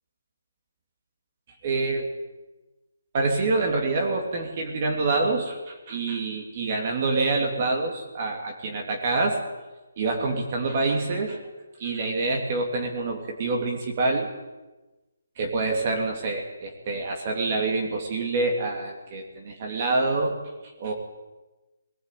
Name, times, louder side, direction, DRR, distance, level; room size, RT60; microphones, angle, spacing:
voice 1, 1.6-2.1 3.1-9.4 10.0-11.4 11.8-14.3 15.4-20.4 20.6-20.9, right 3 dB, 30° right, 2 dB, 3.0 m, -26 dB
20.5 x 18.5 x 9.4 m, 1.1 s
hypercardioid pair, 170°, 0 cm